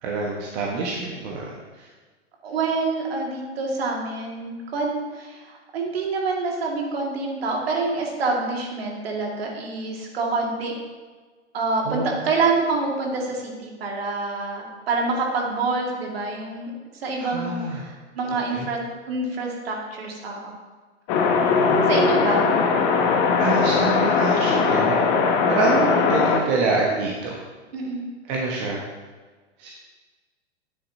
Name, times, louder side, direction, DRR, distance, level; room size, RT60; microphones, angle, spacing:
voice 1, 0.0-1.9 11.8-12.2 17.3-17.8 18.3-18.7 21.5-22.0 23.4-25.0 25.5-27.4 28.3-28.8 29.6-29.7, right 3 dB, 35° right, -2 dB, 1.4 m, -26 dB
voice 2, 2.4-10.7 11.5-18.8 19.1-20.5 21.9-22.5 27.7-28.0, right 3 dB, 55° right, 0 dB, 2.2 m, -26 dB
sound 1, 21.1-26.4, left 5 dB, 35° left, 1.1 m, -20 dB
11.0 x 9.8 x 2.8 m, 1.4 s
figure-of-eight pair, 100°, 35 cm